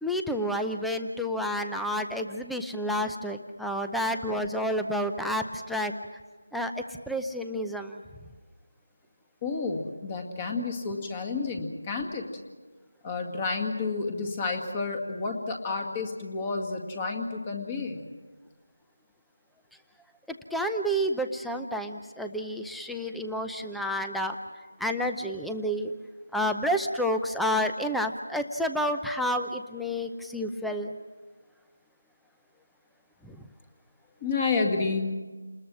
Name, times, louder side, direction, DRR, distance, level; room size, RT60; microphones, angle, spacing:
voice 1, 0.0-5.9 6.5-8.0 20.5-24.3 24.8-25.9 26.3-31.0 33.3-33.4, equal, ahead, 5 dB, 0.6 m, -30 dB
voice 2, 9.4-12.2 13.0-18.0 34.2-35.1, left 4 dB, 20° left, 4 dB, 2.0 m, -30 dB
29.0 x 20.5 x 6.2 m, 1.3 s
figure-of-eight pair, 170°, 0 cm